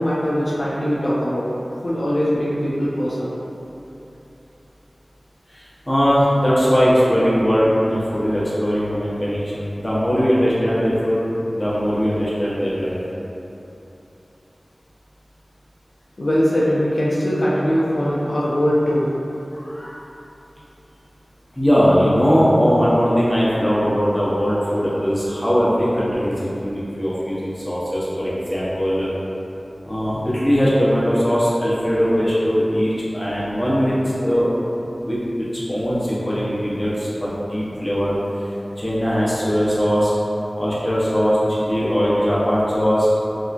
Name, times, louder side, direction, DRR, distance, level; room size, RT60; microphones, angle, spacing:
voice 1, 0.0-1.5 1.8-3.3 16.2-19.1, equal, 65° left, -8 dB, 0.3 m, -21 dB
voice 2, 5.5-11.2 11.5-13.0 19.5-20.0 21.5-29.1 29.8-34.5 35.1-35.2 35.7-38.5 38.8-40.1 40.6-43.1, equal, 20° left, -9 dB, 0.8 m, -20 dB
2.8 x 2.5 x 2.4 m, 2.9 s
wide cardioid pair, 50°, 0 cm